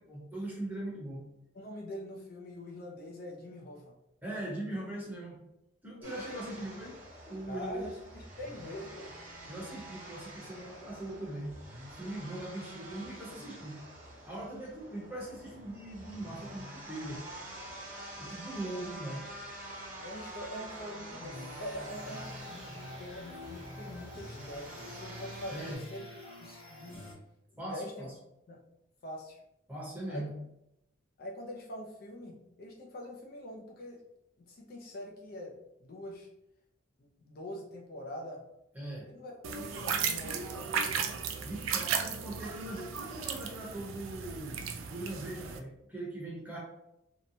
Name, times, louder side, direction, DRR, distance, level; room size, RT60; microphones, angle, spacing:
voice 1, 0.1-1.2 4.2-5.4 5.8-7.0 7.3-7.9 9.5-11.6 11.9-13.8 14.2-17.2 18.2-19.2 25.5-25.8 27.6-28.1 29.7-30.3 38.7-39.1 41.4-46.6, right 1 dB, 10° right, -5 dB, 0.8 m, -40 dB
voice 2, 1.5-3.9 6.0-6.2 7.5-9.1 20.0-27.1 27.5-28.1 28.5-28.6 29.0-29.4 30.1-30.2 31.2-34.0 34.4-36.3 37.0-38.4 39.0-39.3 39.7-41.5, left 1 dB, 45° left, 0 dB, 0.4 m, -44 dB
sound 1, 6.0-25.8, right 1 dB, 40° right, 0.9 m, -47 dB
sound 2, 21.3-27.1, left 1 dB, 30° left, 0.9 m, -47 dB
sound 3, 39.4-45.6, right 6 dB, 80° right, 0.3 m, -35 dB
2.8 x 2.1 x 2.6 m, 0.83 s
head